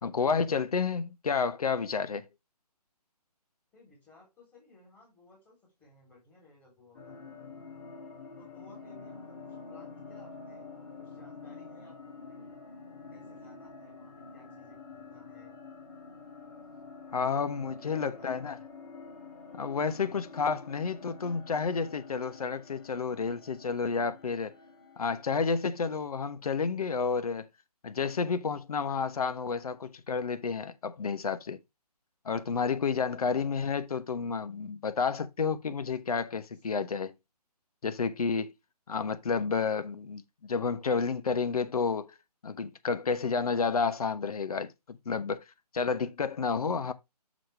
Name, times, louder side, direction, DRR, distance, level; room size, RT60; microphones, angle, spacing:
voice 1, 0.0-2.3 17.1-18.6 19.6-24.5 25.0-27.5 27.8-31.6 32.2-37.1 37.8-38.5 38.9-42.1 42.4-45.4 45.7-46.9, left 5 dB, 60° left, 1.1 m, -30 dB
voice 2, 3.7-7.2 8.4-10.7 11.0-12.6 13.1-15.6 17.3-18.3 20.0-20.3 36.5-36.6, left 2 dB, 10° left, 3.7 m, -59 dB
sound 1, 6.9-25.9, left 4 dB, 40° left, 2.9 m, -48 dB
6.3 x 6.3 x 3.4 m
figure-of-eight pair, 155°, 21 cm